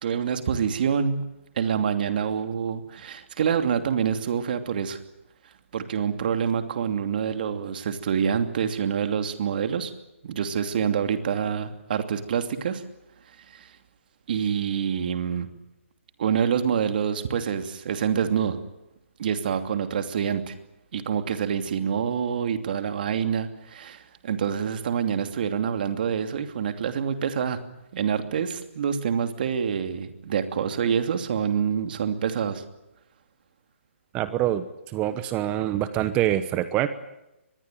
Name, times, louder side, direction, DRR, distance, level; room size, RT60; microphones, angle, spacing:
voice 1, 0.0-1.2 1.6-5.0 5.7-9.9 10.2-12.8 13.5-13.7 14.3-15.5 16.2-18.6 19.2-20.6 20.9-27.6 27.9-32.6, right 7 dB, 45° right, 8 dB, 2.8 m, -26 dB
voice 2, 34.1-34.6 34.9-36.9, right 13 dB, 15° right, 13 dB, 1.0 m, -25 dB
24.0 x 21.0 x 9.2 m, 0.93 s
hypercardioid pair, 160°, 7 cm